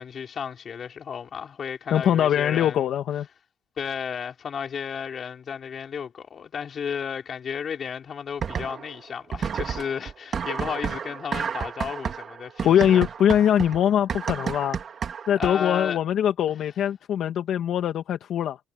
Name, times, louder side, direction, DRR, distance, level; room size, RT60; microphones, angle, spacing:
voice 1, 0.0-2.9 3.8-13.0 15.4-16.0, left 7 dB, 40° left, 3.9 m, -33 dB
voice 2, 1.9-3.3 12.6-14.8 15.3-18.6, left 10 dB, 55° left, 1.7 m, -22 dB
sound 1, 8.4-9.0 9.3-15.8, right 7 dB, 40° right, 2.2 m, -31 dB
cardioid pair, 135°, 0 cm